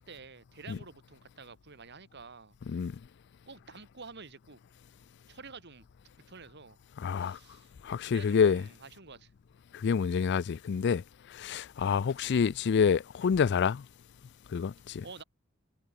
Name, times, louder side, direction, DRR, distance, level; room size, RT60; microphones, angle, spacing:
voice 1, 0.0-2.6 3.5-4.6 5.3-5.9 6.3-6.8 7.1-7.7 8.0-9.3 15.0-15.2, right 4 dB, 55° right, 2.3 m, -49 dB
voice 2, 2.7-3.0 7.0-7.4 7.8-8.7 9.7-11.0 11.3-13.8 14.5-15.0, left 6 dB, 55° left, 0.4 m, -27 dB
head